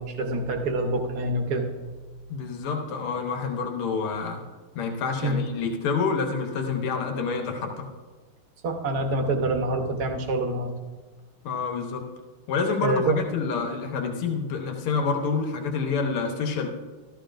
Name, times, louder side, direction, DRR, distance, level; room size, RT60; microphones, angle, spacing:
voice 1, 0.0-1.7 5.2-5.4 8.6-10.7 12.8-13.2, right 2 dB, 50° right, 4 dB, 1.5 m, -26 dB
voice 2, 2.3-4.4 4.8-7.9 11.4-12.1 12.5-16.7, left 5 dB, 80° left, 3 dB, 2.1 m, -28 dB
14.0 x 13.0 x 2.5 m, 1.3 s
omnidirectional pair, 2.4 m